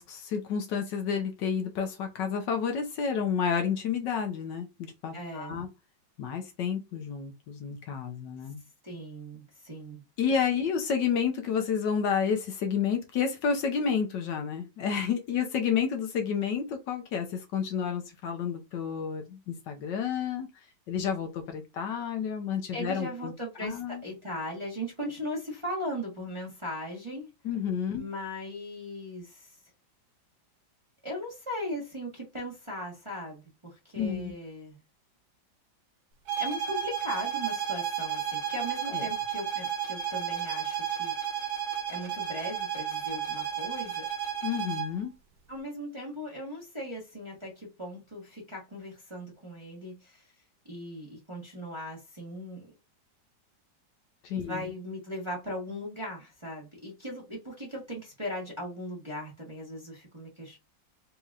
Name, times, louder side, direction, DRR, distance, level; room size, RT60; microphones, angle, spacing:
voice 1, 0.0-5.7 6.2-8.6 10.2-20.5 20.9-23.3 23.6-24.0 27.4-28.0 34.0-34.3 38.9-39.1 44.4-45.1 54.2-54.7, left 7 dB, 70° left, 1.3 m, -30 dB
voice 2, 5.1-5.6 8.8-10.0 22.7-27.3 27.9-29.6 31.0-34.8 36.4-41.4 41.9-44.1 45.5-50.3 50.6-52.7 54.3-60.6, equal, 20° right, 1.0 m, -38 dB
sound 1, 36.3-45.0, right 9 dB, 85° right, 1.5 m, -32 dB
4.2 x 2.9 x 2.4 m
omnidirectional pair, 2.1 m